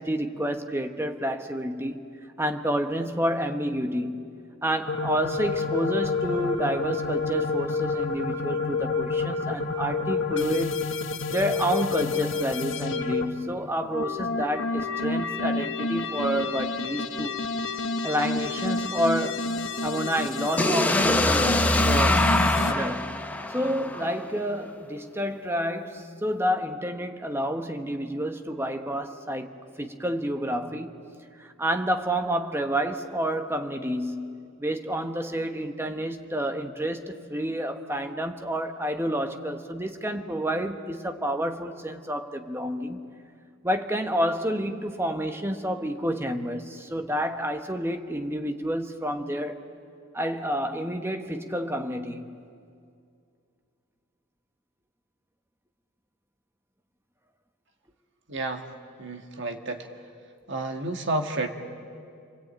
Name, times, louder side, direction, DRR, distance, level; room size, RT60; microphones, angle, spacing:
voice 1, 0.0-2.0 2.4-4.2 4.6-10.9 11.3-17.4 18.0-19.5 19.8-22.3 22.6-23.1 23.5-31.0 31.4-43.1 43.6-49.6 50.1-52.3, equal, 10° right, 6 dB, 1.2 m, -29 dB
sound 1, 4.9-13.2 13.8-22.7, left 4 dB, 60° left, 1.5 m, -29 dB
sound 2, 20.6-24.5, left 1 dB, 5° left, 0.8 m, -24 dB
voice 2, 58.3-58.7 59.0-59.9 60.5-61.5, right 2 dB, 55° right, 5 dB, 1.9 m, -30 dB
28.0 x 23.0 x 8.9 m, 2.4 s
head